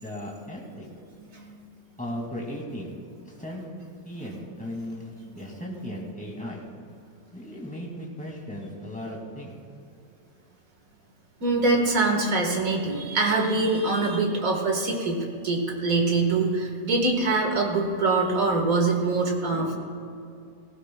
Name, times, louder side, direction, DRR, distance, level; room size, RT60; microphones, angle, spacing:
voice 1, 0.0-0.8 2.0-2.9 3.4-3.6 4.0-6.6 7.3-9.5, equal, 5° left, -2 dB, 2.1 m, -36 dB
voice 2, 11.4-19.8, right 3 dB, 50° right, 1 dB, 2.0 m, -24 dB
19.0 x 16.0 x 2.3 m, 2.5 s
omnidirectional pair, 2.0 m